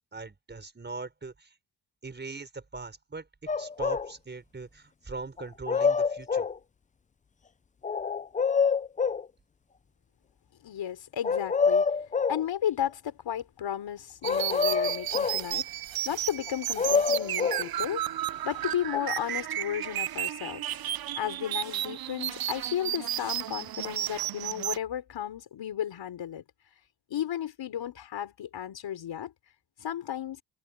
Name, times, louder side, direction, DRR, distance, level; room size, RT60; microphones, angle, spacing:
voice 1, 0.1-1.6 2.0-6.5, right 3 dB, 25° right, 5.0 m, -41 dB
sound 1, 3.5-4.1 5.4-6.6 7.8-9.3 11.2-12.4 14.2-15.4 16.5-17.7 18.9-19.0, left 5 dB, 20° left, 0.3 m, -26 dB
voice 2, 10.6-11.8 12.3-15.7 16.0-18.0 18.4-20.8 21.2-26.4 27.1-29.3 29.8-30.4, left 10 dB, 80° left, 4.4 m, -34 dB
sound 2, 14.2-24.8, right 12 dB, 55° right, 0.6 m, -33 dB
wide cardioid pair, 145°, 44 cm